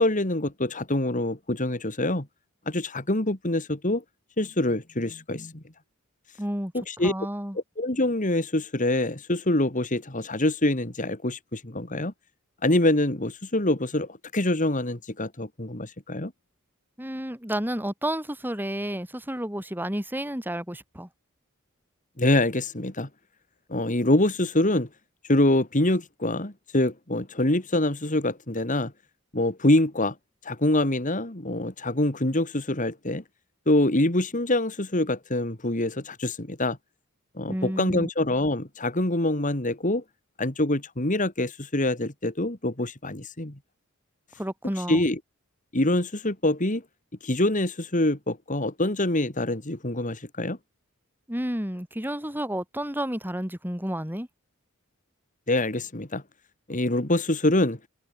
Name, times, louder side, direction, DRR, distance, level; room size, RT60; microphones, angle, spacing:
voice 1, 0.0-2.3 2.7-4.0 4.4-5.6 6.7-7.1 7.8-12.1 12.6-16.3 22.2-23.1 23.7-24.9 25.3-28.9 29.3-30.1 30.4-33.2 33.7-36.8 37.4-40.0 40.4-43.5 44.9-45.2 45.7-46.8 47.2-50.6 55.5-56.2 56.7-57.8, left 1 dB, 40° left, 2.8 m, -25 dB
voice 2, 6.4-6.7 7.0-7.6 17.0-21.1 37.5-38.1 44.4-45.0 51.3-54.3, right 1 dB, 10° right, 4.7 m, -31 dB
head